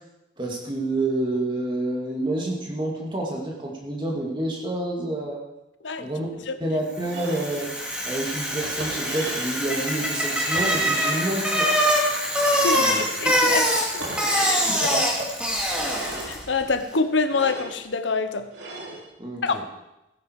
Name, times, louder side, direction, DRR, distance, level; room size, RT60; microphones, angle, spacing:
voice 1, 0.4-5.4 6.0-6.3 6.6-7.7 8.0-11.7 12.8-13.3 14.7-15.1 19.2-19.6, right 1 dB, 25° right, -1 dB, 2.4 m, -28 dB
Bicycle, 7.0-16.5, equal, 5° right, 2.2 m, -24 dB
sound 1, 7.0-7.6 8.6-9.6 10.5-11.3 12.5-13.2 14.0-14.7 15.6-16.3 17.2-17.8 18.5-19.0, right 2 dB, 85° right, 3.4 m, -37 dB
voice 2, 12.6-14.9 16.2-18.5 19.4-19.6, left 4 dB, 85° left, 10 dB, 1.0 m, -26 dB
16.0 x 10.5 x 4.8 m, 0.93 s
head